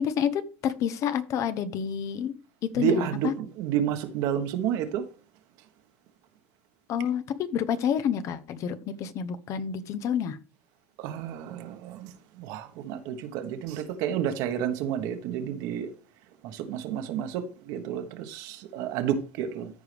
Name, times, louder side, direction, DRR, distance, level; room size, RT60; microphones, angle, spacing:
voice 1, 0.0-2.3 2.7-3.3 6.9-10.4, left 8 dB, 45° left, 0.8 m, -29 dB
voice 2, 2.8-5.0 11.0-12.1 12.4-15.9 16.4-19.7, right 9 dB, 60° right, 1.3 m, -30 dB
13.5 x 4.8 x 3.4 m
supercardioid pair, 110°, 7 cm